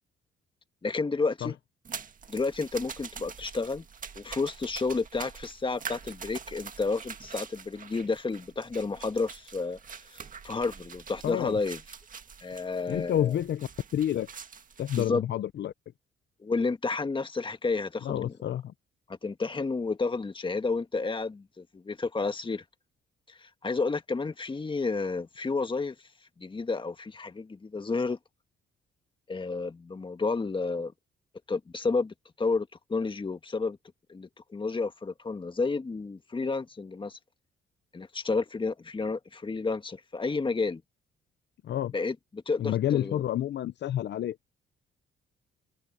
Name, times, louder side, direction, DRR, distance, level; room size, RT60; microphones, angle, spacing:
voice 1, 0.8-1.5 2.3-3.8 4.1-9.8 10.1-11.8 12.4-13.3 14.9-15.2 16.4-18.3 19.1-22.6 23.3-25.9 26.4-28.2 29.3-30.9 31.5-33.8 34.1-37.2 37.9-40.8 41.9-43.2, left 4 dB, 25° left, 1.7 m, -31 dB
sound 1, 1.8-15.1, right 6 dB, 40° right, 1.8 m, -45 dB
voice 2, 11.2-11.6 12.9-14.3 14.8-15.7 18.0-18.7 41.6-41.9 42.6-44.4, left 11 dB, 60° left, 0.7 m, -29 dB
cardioid pair, 90°, 20 cm